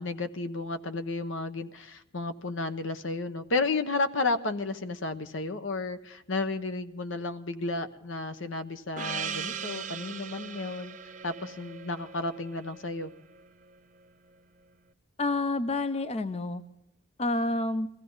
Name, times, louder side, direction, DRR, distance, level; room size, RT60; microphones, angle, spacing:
voice 1, 0.0-11.0 11.2-13.1, left 3 dB, 75° left, 10 dB, 1.0 m, -32 dB
Gong, 9.0-13.7, right 6 dB, 40° right, 0.8 m, -39 dB
voice 2, 15.2-16.6 17.2-17.9, left 2 dB, 30° left, 12 dB, 0.6 m, -28 dB
22.5 x 15.5 x 3.9 m, 0.80 s
head